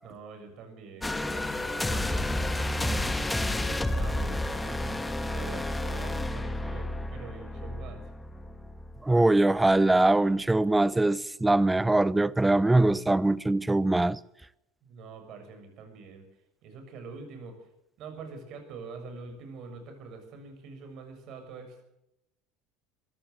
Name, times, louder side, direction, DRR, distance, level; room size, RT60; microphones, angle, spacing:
voice 1, 0.0-3.0 3.4-8.0 14.8-16.2 16.6-17.7 18.0-21.8, right 4 dB, 55° right, 6.9 m, -45 dB
sound 1, 1.0-9.2 9.6-9.8, left 1 dB, 10° left, 1.7 m, -31 dB
voice 2, 9.0-14.2, right 2 dB, 10° right, 0.8 m, -22 dB
22.5 x 15.0 x 7.9 m
hypercardioid pair, 75°, 0 cm